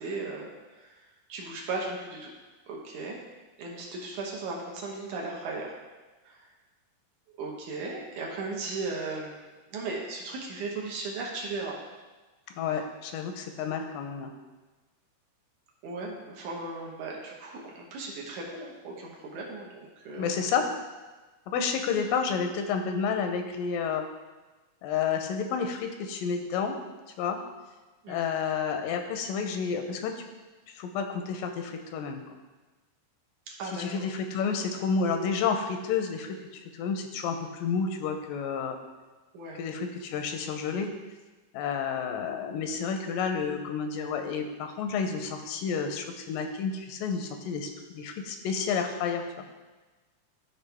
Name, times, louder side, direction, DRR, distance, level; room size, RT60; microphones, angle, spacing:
voice 1, 0.0-2.3 2.7-3.2 3.6-5.7 6.2-6.5 7.4-9.4 9.7-11.7 15.8-20.4 28.0-28.3 33.5-34.0 39.3-39.6, right 3 dB, 70° right, -2 dB, 2.4 m, -37 dB
voice 2, 12.6-14.3 20.2-20.7 21.5-24.1 24.8-26.8 27.2-27.4 28.1-30.1 30.8-32.2 33.7-38.8 39.6-40.9 41.5-49.4, left 6 dB, 85° left, 5 dB, 2.3 m, -30 dB
12.5 x 4.3 x 3.4 m, 1.2 s
omnidirectional pair, 4.0 m